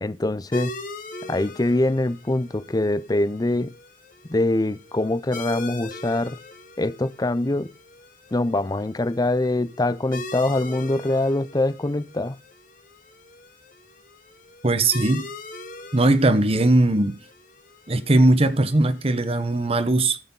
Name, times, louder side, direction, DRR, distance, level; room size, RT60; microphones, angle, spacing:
voice 1, 0.0-0.7 1.2-3.7 4.2-6.4 6.8-7.7 8.3-12.4, left 2 dB, 20° left, 0.5 m, -24 dB
sound 1, 0.5-19.7, left 2 dB, 50° left, 1.7 m, -41 dB
voice 2, 14.6-15.3 15.9-17.2 17.9-20.2, right 2 dB, 35° right, 0.9 m, -19 dB
14.0 x 6.7 x 5.5 m
head